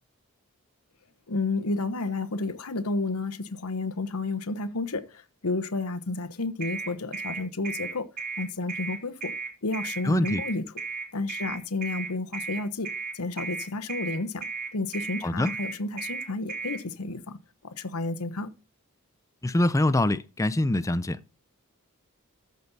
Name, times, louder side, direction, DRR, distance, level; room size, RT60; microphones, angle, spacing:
voice 1, 1.3-8.1 8.4-9.3 9.6-10.6 11.1-14.5 14.7-18.5, left 3 dB, 80° left, 1.0 m, -31 dB
sound 1, 6.6-16.8, right 4 dB, 40° right, 3.4 m, -34 dB
voice 2, 10.0-10.4 15.2-15.5 19.4-21.2, left 1 dB, 15° left, 0.4 m, -24 dB
14.0 x 5.3 x 4.1 m
head